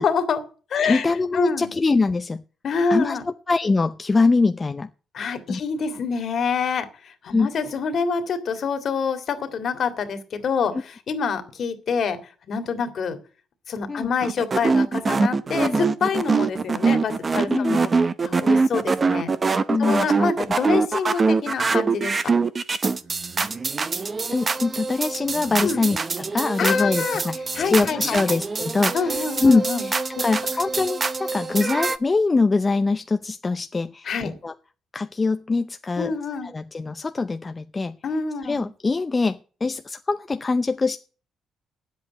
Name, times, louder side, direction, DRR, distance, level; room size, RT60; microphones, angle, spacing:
voice 1, 0.0-1.0 1.3-1.7 2.6-3.2 5.1-12.2 12.4-13.2 13.7-17.8 18.2-19.3 19.8-22.3 25.6-25.8 26.6-27.2 27.5-28.2 28.9-29.9 34.1-34.3 36.0-36.5 38.0-38.6, left 5 dB, 60° left, 8 dB, 2.2 m, -26 dB
voice 2, 0.8-2.4 2.9-4.9 5.5-5.6 7.3-7.5 13.9-14.1 15.6-15.8 17.5-17.8 19.7-20.1 24.3-34.5 34.9-36.1 36.4-38.0 38.4-41.0, left 3 dB, 25° left, 8 dB, 0.6 m, -23 dB
sound 1, 14.2-32.0, right 4 dB, 35° right, 0.9 m, -24 dB
9.3 x 8.0 x 9.2 m, 0.38 s
cardioid pair, 90°, 0 cm